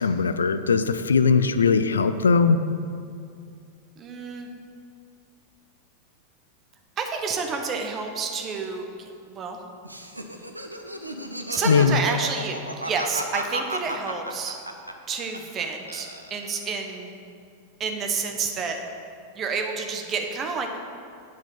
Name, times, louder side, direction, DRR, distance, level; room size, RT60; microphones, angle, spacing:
voice 1, 0.0-2.6 11.6-12.0, left 5 dB, 70° left, 10 dB, 0.3 m, -20 dB
voice 2, 4.0-4.5 7.0-9.6 11.5-14.6 15.1-17.1 17.8-18.8 19.3-20.8, right 5 dB, 30° right, 4 dB, 1.0 m, -29 dB
Laughter, 9.8-15.6 15.9-16.7, right 1 dB, 85° right, 0.5 m, -33 dB
9.1 x 4.7 x 5.6 m, 2.4 s
figure-of-eight pair, 90°, 0 cm